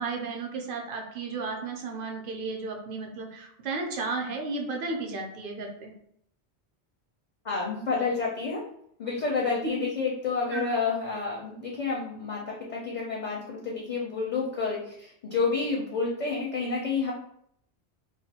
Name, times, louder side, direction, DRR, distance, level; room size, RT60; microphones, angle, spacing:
voice 1, 0.0-5.9 9.6-9.7 10.5-10.7, right 3 dB, 60° right, 2 dB, 0.7 m, -33 dB
voice 2, 7.4-8.7 9.0-17.1, left 4 dB, 55° left, -3 dB, 0.5 m, -29 dB
2.3 x 2.2 x 2.7 m, 0.70 s
omnidirectional pair, 1.1 m